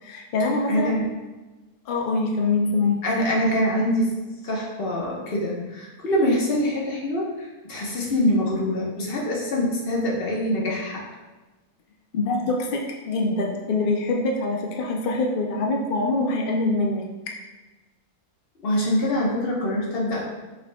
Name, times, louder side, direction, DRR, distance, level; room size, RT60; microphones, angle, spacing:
voice 1, 0.0-1.0 1.9-3.0 12.1-17.0, left 2 dB, 80° left, 0 dB, 0.4 m, -24 dB
voice 2, 0.7-1.1 3.0-4.1 4.4-11.0 18.6-20.2, left 1 dB, 45° left, -4 dB, 1.1 m, -24 dB
5.7 x 4.1 x 2.2 m, 1.2 s
omnidirectional pair, 1.6 m